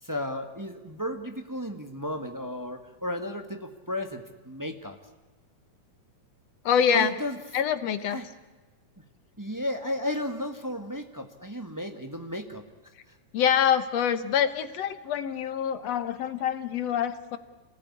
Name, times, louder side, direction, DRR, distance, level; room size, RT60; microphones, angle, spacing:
voice 1, 0.0-5.0 6.9-7.4 8.1-8.3 9.4-12.6, left 1 dB, 10° right, 5 dB, 0.8 m, -34 dB
voice 2, 6.7-7.2 7.5-8.2 13.3-17.4, left 8 dB, 65° left, 12 dB, 2.0 m, -25 dB
28.0 x 19.0 x 9.8 m, 1.2 s
omnidirectional pair, 3.5 m